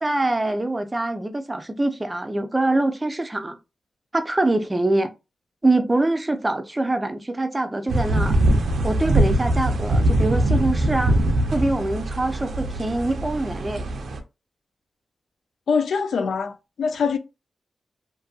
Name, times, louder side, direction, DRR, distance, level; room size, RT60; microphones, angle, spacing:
voice 1, 0.0-3.6 4.1-5.1 5.6-8.4 8.8-11.2 11.5-13.8, right 2 dB, 20° right, 0.5 m, -24 dB
sound 1, 7.9-14.2, right 1 dB, 80° right, 0.5 m, -22 dB
voice 2, 15.7-17.2, left 5 dB, 85° left, 0.3 m, -23 dB
2.6 x 2.5 x 2.4 m
wide cardioid pair, 85°, 0 cm